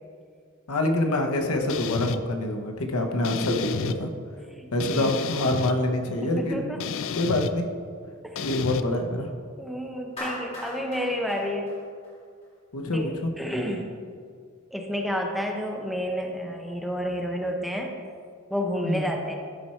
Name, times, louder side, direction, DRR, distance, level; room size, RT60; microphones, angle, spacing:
voice 1, 0.7-4.1 4.7-6.8 7.1-7.7 8.4-9.3 12.7-13.3 18.8-19.1, left 1 dB, 80° left, 4 dB, 0.9 m, -26 dB
sound 1, 1.7-2.2 3.2-4.0 4.8-5.7 6.8-7.5 8.4-8.8, left 6 dB, 65° left, 0.4 m, -31 dB
voice 2, 6.2-6.9 8.2-8.5 9.6-11.8 12.9-13.0 13.4-13.9 14.7-17.9 18.5-19.3, equal, ahead, 1 dB, 0.7 m, -30 dB
Clapping, 10.2-12.5, left 1 dB, 30° left, 1.9 m, -38 dB
12.0 x 4.3 x 4.3 m, 2.1 s
head